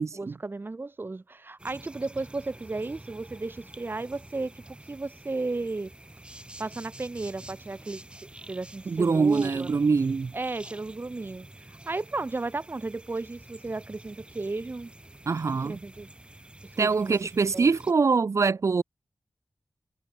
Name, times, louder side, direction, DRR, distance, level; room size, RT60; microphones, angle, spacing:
voice 1, 0.1-5.9 6.6-9.7 10.3-14.9 15.6-16.1 16.7-17.7, right 3 dB, 45° right, 6.7 m, -34 dB
sound 1, 1.6-17.9, right 1 dB, 20° right, 5.7 m, -48 dB
voice 2, 8.9-10.3 15.3-15.7 16.8-18.8, right 4 dB, 70° right, 2.1 m, -24 dB
wide cardioid pair, 85°, 5 cm